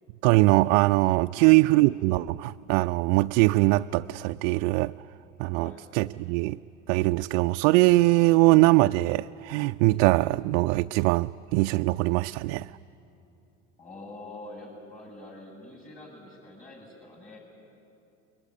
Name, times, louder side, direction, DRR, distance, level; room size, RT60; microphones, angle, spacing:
voice 1, 0.2-4.9 5.4-6.6 6.9-12.7, right 21 dB, 65° right, 9 dB, 0.5 m, -22 dB
voice 2, 5.5-5.9 13.8-17.4, left 2 dB, 20° left, -5 dB, 7.8 m, -45 dB
21.5 x 19.5 x 9.8 m, 2.8 s
hypercardioid pair, 70°, 40 cm